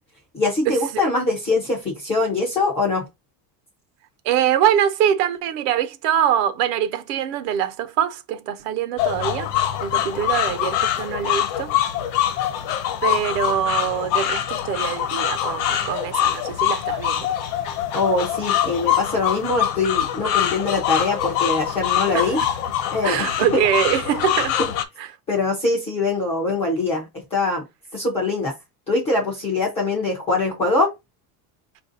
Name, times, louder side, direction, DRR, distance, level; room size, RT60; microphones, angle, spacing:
voice 1, 0.3-3.0 17.9-22.4 22.9-23.3 25.3-27.6 27.9-28.5 28.9-30.9, left 3 dB, 15° left, 0.3 m, -23 dB
voice 2, 4.2-9.5 9.8-11.7 13.0-17.3 22.1-22.4 23.0-24.6 25.0-25.1, right 10 dB, 70° right, 0.8 m, -23 dB
sound 1, 9.0-24.8, left 11 dB, 65° left, 1.0 m, -24 dB
4.8 x 2.6 x 3.7 m
cardioid pair, 175°, 48 cm